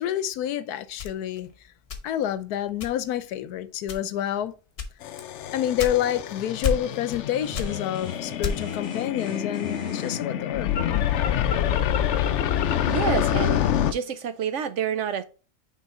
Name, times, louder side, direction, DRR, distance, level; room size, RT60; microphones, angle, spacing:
voice 1, 0.0-1.5 2.0-4.5 5.5-11.1, left 11 dB, 85° left, 1.2 m, -28 dB
sound 1, 1.0-2.4 2.8-3.3 3.8-4.3 4.8-6.3 6.6-7.2 7.5-8.8, left 5 dB, 45° left, 1.2 m, -31 dB
sound 2, 5.0-13.9, left 10 dB, 65° left, 0.7 m, -26 dB
sound 3, 7.4-10.2, left 2 dB, 5° left, 3.0 m, -40 dB
voice 2, 12.9-15.2, right 8 dB, 70° right, 0.7 m, -28 dB
6.1 x 3.9 x 4.2 m
omnidirectional pair, 1.6 m